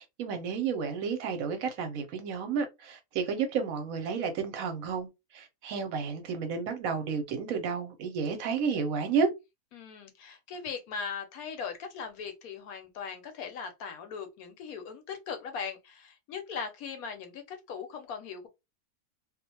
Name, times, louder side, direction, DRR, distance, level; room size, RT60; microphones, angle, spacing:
voice 1, 0.0-9.3, right 6 dB, 70° right, 0.9 m, -31 dB
voice 2, 9.7-18.5, left 6 dB, 75° left, 1.1 m, -39 dB
2.5 x 2.1 x 2.7 m
omnidirectional pair, 1.7 m